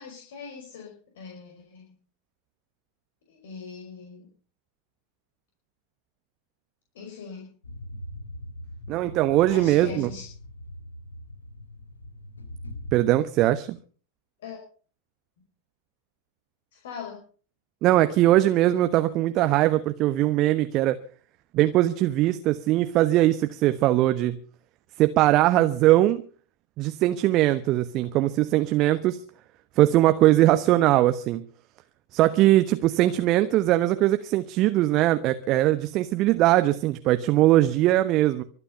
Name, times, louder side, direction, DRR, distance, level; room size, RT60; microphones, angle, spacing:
voice 1, 0.0-1.9 3.3-4.3 6.9-7.5 9.5-10.3 14.4-14.6 16.7-17.2, left 5 dB, 60° left, 5.4 m, -41 dB
sound 1, 7.6-13.0, left 1 dB, 75° left, 2.2 m, -41 dB
voice 2, 8.9-10.1 12.9-13.8 17.8-21.0 21.5-24.4 25.0-26.2 26.8-29.2 29.8-31.4 32.1-38.4, right 15 dB, 40° right, 1.1 m, -21 dB
24.5 x 9.8 x 5.6 m
figure-of-eight pair, 90°, 0 cm